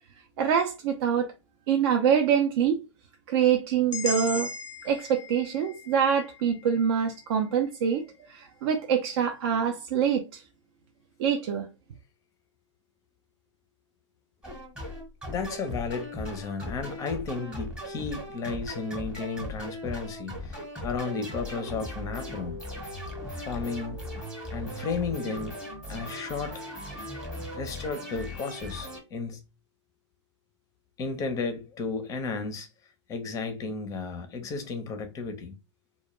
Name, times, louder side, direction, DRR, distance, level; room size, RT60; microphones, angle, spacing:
voice 1, 0.4-1.3 1.7-2.8 3.3-4.5 4.8-8.0 8.3-10.4 11.2-11.7, right 7 dB, 50° right, 0.4 m, -25 dB
sound 1, 3.9-7.9, left 3 dB, 80° left, 0.4 m, -38 dB
sound 2, 14.4-29.0, left 1 dB, 5° right, 0.8 m, -38 dB
voice 2, 15.3-22.6 23.3-24.1 24.5-25.6 25.9-26.6 27.5-29.4 31.0-32.7 33.1-35.5, left 4 dB, 20° left, 0.5 m, -33 dB
2.1 x 2.1 x 3.0 m
hypercardioid pair, 120°, 16 cm